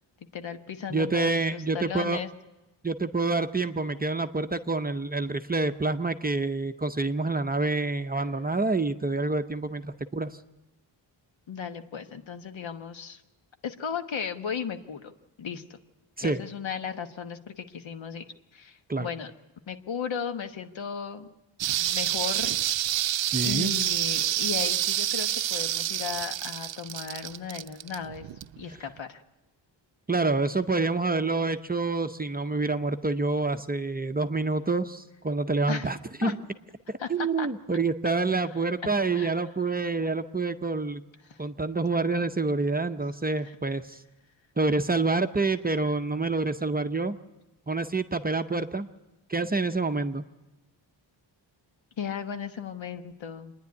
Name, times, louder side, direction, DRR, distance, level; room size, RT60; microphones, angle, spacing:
voice 1, 0.3-2.3 11.5-13.2 13.6-15.1 15.4-15.8 16.2-18.2 18.5-19.3 19.7-21.3 21.7-22.5 23.4-28.3 28.6-29.2 35.7-35.9 36.2-36.3 37.0-37.5 39.1-39.3 41.2-41.4 43.4-43.6 52.0-53.5, left 7 dB, 75° left, 8 dB, 1.3 m, -35 dB
voice 2, 0.9-2.2 2.8-10.4 16.2-16.4 18.9-19.1 23.3-23.7 30.1-36.4 36.9-41.0 41.4-44.0 44.6-47.2 47.7-48.9 49.3-50.2, right 3 dB, 20° right, 8 dB, 0.6 m, -27 dB
sound 1, 21.6-28.6 29.0-29.1, right 12 dB, 75° right, 0.6 m, -28 dB
27.0 x 10.0 x 9.6 m, 1.1 s
wide cardioid pair, 165°, 46 cm